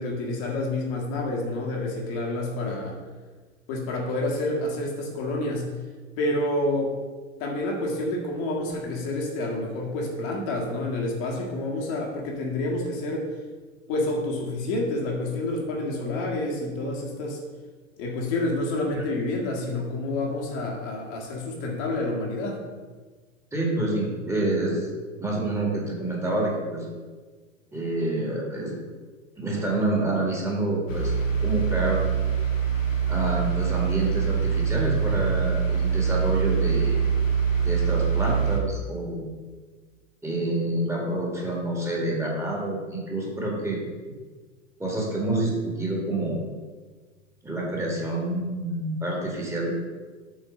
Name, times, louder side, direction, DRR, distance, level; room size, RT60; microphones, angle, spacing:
voice 1, 0.0-3.0 3.7-5.7 6.2-7.0 7.4-13.3 13.9-17.4 18.0-22.6, left 2 dB, 45° left, -1 dB, 1.7 m, -28 dB
voice 2, 23.5-24.9 25.2-26.9 27.7-28.7 29.4-31.1 31.4-32.0 33.1-37.0 37.6-39.3 40.2-43.8 44.8-46.4 47.4-49.8, right 2 dB, 5° right, -3 dB, 1.8 m, -27 dB
sound 1, 30.9-38.6, right 7 dB, 75° left, 1.3 m, -24 dB
7.8 x 4.3 x 5.1 m, 1.4 s
figure-of-eight pair, 85°, 39 cm